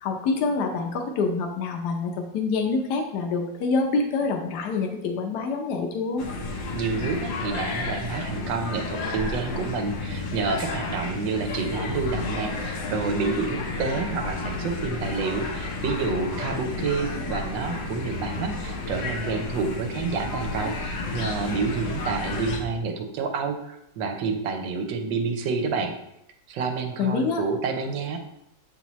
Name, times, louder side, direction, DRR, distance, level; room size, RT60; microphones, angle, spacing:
voice 1, 0.0-6.3 27.0-27.4, left 4 dB, 70° left, 2 dB, 1.2 m, -26 dB
sound 1, 6.2-22.6, left 3 dB, 90° left, 1.7 m, -31 dB
voice 2, 6.7-25.9 26.5-28.2, right 4 dB, 85° right, 5 dB, 1.4 m, -29 dB
7.1 x 4.5 x 3.0 m, 0.81 s
omnidirectional pair, 1.9 m